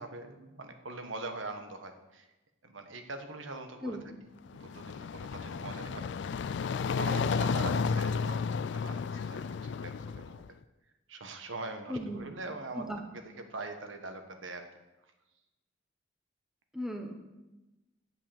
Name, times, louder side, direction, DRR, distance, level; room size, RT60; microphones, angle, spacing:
voice 1, 0.0-2.3 2.6-4.0 4.5-10.4 11.1-12.9 13.1-14.7, right 3 dB, 85° right, 6 dB, 1.3 m, -43 dB
voice 2, 3.8-4.2 11.9-12.3 12.7-13.0 16.7-17.1, equal, ahead, 3 dB, 1.1 m, -37 dB
sound 1, 4.5-10.5, left 5 dB, 65° left, 0.3 m, -32 dB
9.1 x 7.6 x 7.1 m, 1.0 s
head